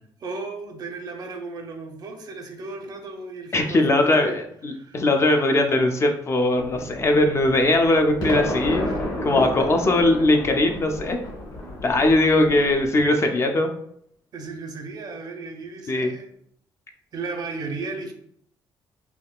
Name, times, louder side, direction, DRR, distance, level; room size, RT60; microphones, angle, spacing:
voice 1, 0.2-4.4 4.7-5.0 8.9-9.7 12.0-12.1 14.3-16.3 17.1-18.1, right 3 dB, 50° right, 4 dB, 0.5 m, -35 dB
voice 2, 3.5-8.9 9.2-11.2 11.8-13.7 15.9-16.1, left 2 dB, 35° left, 5 dB, 0.3 m, -20 dB
sound 1, 6.6-12.9, left 1 dB, 60° left, 1.2 m, -31 dB
3.5 x 2.2 x 2.3 m, 0.67 s
cardioid pair, 120°, 8 cm